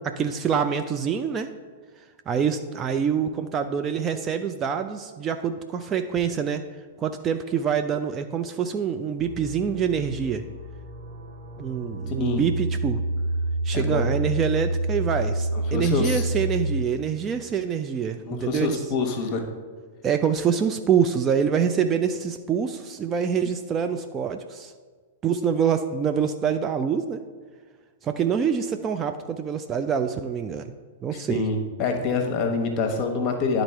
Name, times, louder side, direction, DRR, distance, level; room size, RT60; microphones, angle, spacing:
voice 1, 0.0-1.5 2.3-6.6 7.0-10.4 11.6-13.0 13.6-18.8 20.0-24.7 25.2-27.2 28.0-30.7 31.0-31.4, right 7 dB, 20° right, 7 dB, 0.3 m, -25 dB
sound 1, 9.2-16.8, right 1 dB, 65° right, 1.4 m, -28 dB
voice 2, 12.1-12.4 13.7-14.1 15.7-16.3 18.3-19.4 31.1-33.6, left 4 dB, 30° left, 4 dB, 1.1 m, -26 dB
10.5 x 3.9 x 4.5 m, 1.5 s
figure-of-eight pair, 100°, 0 cm